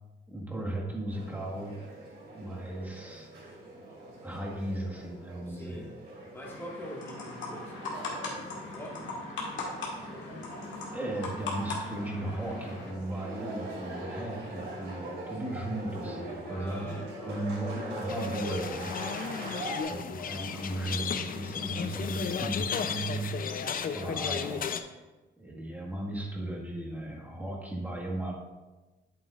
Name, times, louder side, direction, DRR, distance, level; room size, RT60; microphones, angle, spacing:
voice 1, 0.3-1.8 2.3-3.3 4.2-5.9 10.9-19.0 19.9-23.5 23.9-24.8 25.4-28.5, right 1 dB, 10° right, -3 dB, 1.6 m, -36 dB
sound 1, 1.1-19.8, right 1 dB, 60° right, 2.6 m, -42 dB
voice 2, 5.5-5.9 6.3-9.1 16.5-17.5 19.3-19.8, equal, 10° left, -3 dB, 1.7 m, -45 dB
sound 2, 6.4-12.9, left 3 dB, 75° left, 2.0 m, -39 dB
sound 3, 18.1-24.8, left 7 dB, 45° left, 0.5 m, -34 dB
8.4 x 8.1 x 2.5 m, 1.2 s
cardioid pair, 100°, 20 cm